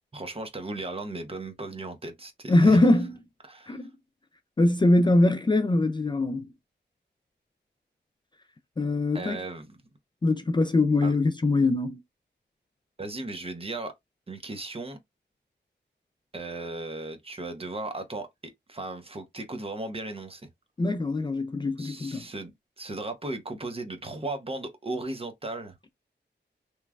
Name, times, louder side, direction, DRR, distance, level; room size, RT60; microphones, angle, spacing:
voice 1, 0.1-2.8 3.4-3.8 9.1-9.8 11.0-11.1 13.0-13.9 14.3-15.0 16.3-20.5 21.8-25.7, right 2 dB, 30° right, 0.7 m, -36 dB
voice 2, 2.5-3.1 3.7-3.8 4.6-6.4 8.8-9.4 10.2-12.0 20.8-22.3, left 2 dB, 25° left, 0.4 m, -22 dB
3.0 x 2.2 x 2.3 m
wide cardioid pair, 75°, 19 cm